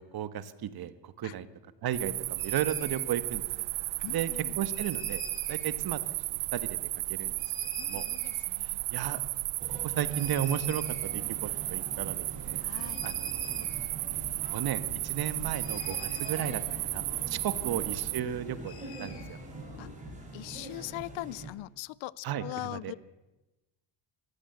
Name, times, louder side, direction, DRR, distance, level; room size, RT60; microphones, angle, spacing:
voice 1, 0.0-1.5 1.8-3.4 4.1-4.3 4.6-6.8 7.1-7.4 7.8-8.1 8.6-9.2 9.7-12.6 13.0-13.7 14.4-19.4 22.2-22.9, right 10 dB, 50° right, 13 dB, 1.5 m, -35 dB
sound 1, 1.9-18.2, right 20 dB, 80° right, 0.8 m, -34 dB
sound 2, 2.4-3.1 4.6-5.8 7.4-8.5 10.1-11.4 11.7-11.8 11.9-20.2, left 7 dB, 50° left, 3.2 m, -48 dB
voice 2, 4.0-4.6 7.8-8.8 12.5-13.0 19.8-19.9 20.3-23.0, left 19 dB, 80° left, 23 dB, 0.7 m, -41 dB
sound 3, 9.6-21.5, right 2 dB, 15° right, 5.6 m, -45 dB
23.5 x 15.5 x 8.0 m, 1.0 s
cardioid pair, 135°, 46 cm